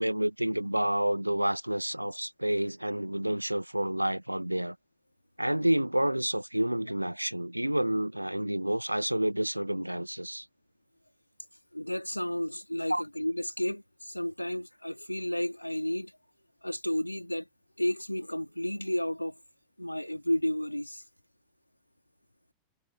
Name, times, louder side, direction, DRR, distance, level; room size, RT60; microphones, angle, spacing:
voice 1, 0.0-4.8 5.4-10.5 12.9-13.0, right 1 dB, 90° right, 2.0 m, -29 dB
voice 2, 11.7-16.1 16.6-17.5 17.8-19.4 19.8-21.0, left 1 dB, 90° left, 3.5 m, -32 dB
figure-of-eight pair, 90°, 0 cm